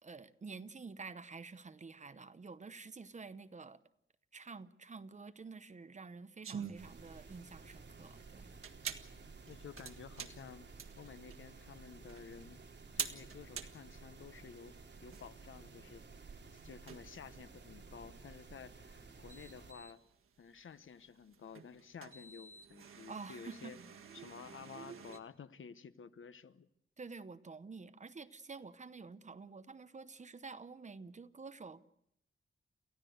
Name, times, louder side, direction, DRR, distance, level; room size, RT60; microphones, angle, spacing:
voice 1, 0.0-3.8 4.3-8.5 23.1-23.7 27.0-31.8, right 4 dB, 35° right, 13 dB, 0.9 m, -49 dB
sound 1, 6.4-25.2, right 6 dB, 85° right, 1.7 m, -49 dB
sound 2, 6.8-19.7, right 4 dB, 55° right, 3.4 m, -54 dB
voice 2, 9.5-10.7 11.0-12.6 13.0-14.8 15.0-16.0 16.5-20.0 20.4-23.8 24.1-26.7, left 6 dB, 70° left, 14 dB, 1.0 m, -52 dB
29.0 x 15.0 x 8.0 m, 0.74 s
wide cardioid pair, 175°, 21 cm